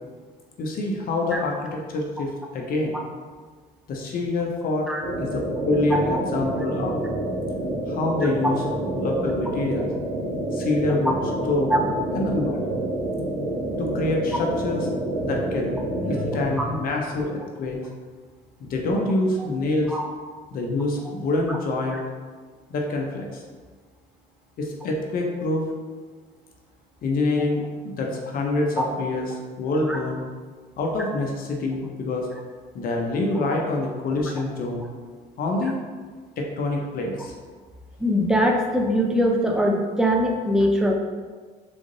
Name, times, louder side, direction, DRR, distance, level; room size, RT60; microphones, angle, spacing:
voice 1, 0.6-3.0 3.9-4.9 5.2-7.0 7.9-8.6 8.9-9.9 10.5-11.2 11.5-11.8 12.1-12.6 13.8-14.9 15.2-17.8 18.6-19.9 20.5-22.0 22.7-23.4 24.6-25.7 27.0-29.3 29.6-30.2 30.8-32.3 32.7-34.8 35.4-35.8 36.4-37.3, left 2 dB, 60° left, 0 dB, 0.8 m, -26 dB
sound 1, 5.0-16.4, right 1 dB, 55° right, 1.1 m, -28 dB
voice 2, 38.0-40.9, equal, 5° right, 0 dB, 0.6 m, -22 dB
3.8 x 3.5 x 3.9 m, 1.5 s
cardioid pair, 110°, 17 cm